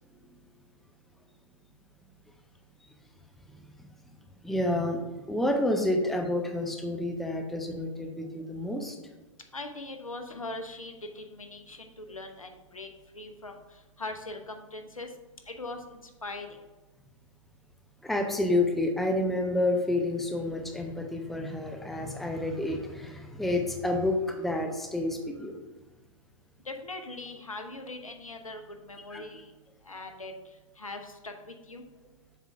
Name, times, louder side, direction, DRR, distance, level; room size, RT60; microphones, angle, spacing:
voice 1, 3.5-3.9 4.4-9.0 18.0-25.5 29.1-29.2, left 1 dB, ahead, 3 dB, 0.5 m, -29 dB
voice 2, 9.5-12.9 13.1-13.6 14.0-15.1 15.5-16.5 26.6-29.5 29.8-30.3 30.8-31.8, left 2 dB, 80° left, 5 dB, 0.9 m, -41 dB
7.2 x 3.7 x 4.5 m, 1.2 s
figure-of-eight pair, 110°, 17 cm